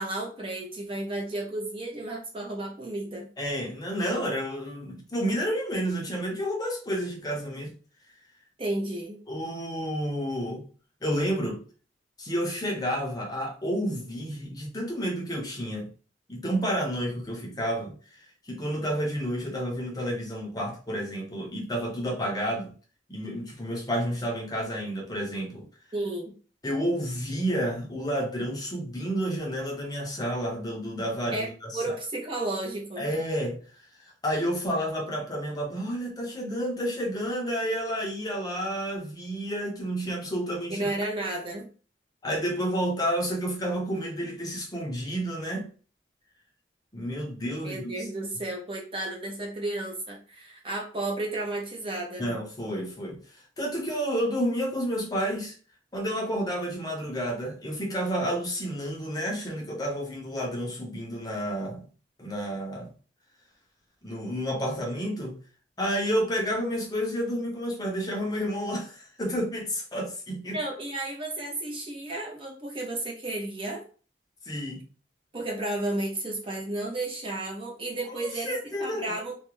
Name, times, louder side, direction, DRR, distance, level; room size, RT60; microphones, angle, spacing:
voice 1, 0.0-3.3 8.6-9.2 25.9-26.3 31.3-31.5 31.7-33.1 40.7-41.7 47.6-52.3 70.5-73.8 75.3-78.5 78.8-79.4, right 2 dB, 30° right, 0.7 m, -32 dB
voice 2, 3.4-7.7 9.3-10.6 11.0-11.6 12.2-15.9 16.3-17.9 18.5-22.7 23.1-25.7 26.6-32.0 33.0-33.6 34.2-40.9 42.2-45.7 46.9-47.8 52.2-53.2 53.6-55.5 55.9-61.9 62.2-62.9 64.0-65.4 65.8-70.6 74.5-74.8 78.2-79.2, equal, 20° left, 0.6 m, -30 dB
2.4 x 2.1 x 3.0 m
head